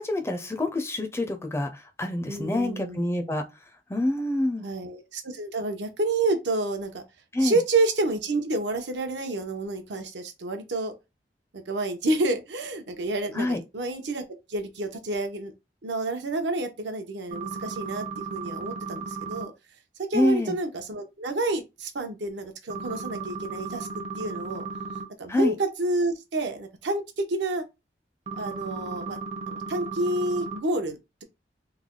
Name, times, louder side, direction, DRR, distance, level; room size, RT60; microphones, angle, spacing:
voice 1, 0.0-3.4 3.9-4.6 7.3-7.6 13.3-13.6 20.1-20.6 25.3-25.5, left 1 dB, 15° left, 0.4 m, -26 dB
voice 2, 2.3-3.0 4.6-7.0 7.4-10.9 11.5-15.5 15.8-19.5 20.1-24.7 25.2-27.6 28.4-29.2 29.5-31.2, right 2 dB, 80° right, 0.8 m, -29 dB
sound 1, 17.3-19.5 22.7-25.0 28.3-30.6, right 4 dB, 40° right, 0.6 m, -35 dB
3.2 x 2.2 x 3.6 m
head